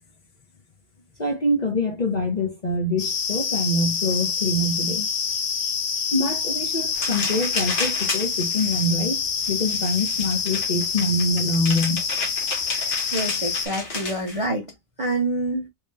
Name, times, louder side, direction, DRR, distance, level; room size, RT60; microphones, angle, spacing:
voice 1, 1.2-5.1 6.1-12.0, left 1 dB, 40° left, 0.7 m, -25 dB
sound 1, 3.0-13.7, left 6 dB, 75° left, 1.3 m, -27 dB
sound 2, 6.9-14.5, left 2 dB, 55° left, 1.3 m, -33 dB
voice 2, 12.7-14.6 15.0-15.7, right 2 dB, 40° right, 0.5 m, -27 dB
3.1 x 2.9 x 3.3 m
omnidirectional pair, 1.6 m